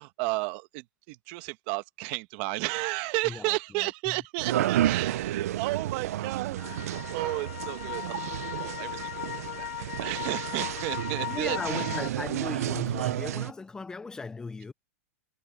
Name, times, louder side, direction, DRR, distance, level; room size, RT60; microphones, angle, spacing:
voice 1, 0.0-9.2 9.6-11.9, right 24 dB, 45° right, 1.3 m, -33 dB
voice 2, 3.2-4.2 11.3-14.7, left 4 dB, 10° left, 0.6 m, -38 dB
sound 1, 4.4-13.5, right 13 dB, 70° right, 0.6 m, -31 dB
sound 2, 6.6-12.1, left 13 dB, 65° left, 1.2 m, -37 dB
supercardioid pair, 150°, 8 cm